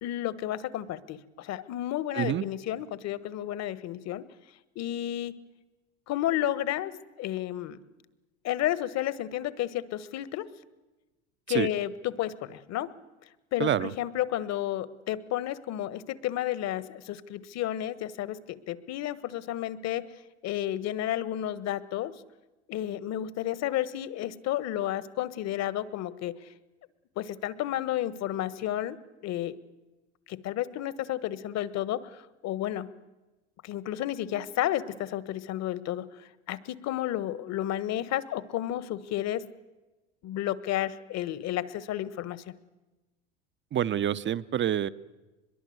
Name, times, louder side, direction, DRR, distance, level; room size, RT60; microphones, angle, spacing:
voice 1, 0.0-4.3 4.7-5.4 6.1-7.8 8.4-10.5 11.5-12.9 13.5-20.1 20.4-22.1 22.7-26.5 27.1-29.6 30.3-32.9 33.6-36.1 36.5-39.5 40.2-42.5, left 13 dB, 50° left, 16 dB, 1.5 m, -32 dB
voice 2, 2.1-2.4 11.5-11.7 13.6-13.9 43.7-44.9, right 10 dB, 35° right, 15 dB, 0.8 m, -27 dB
23.5 x 22.0 x 8.0 m, 1.1 s
hypercardioid pair, 75°, 34 cm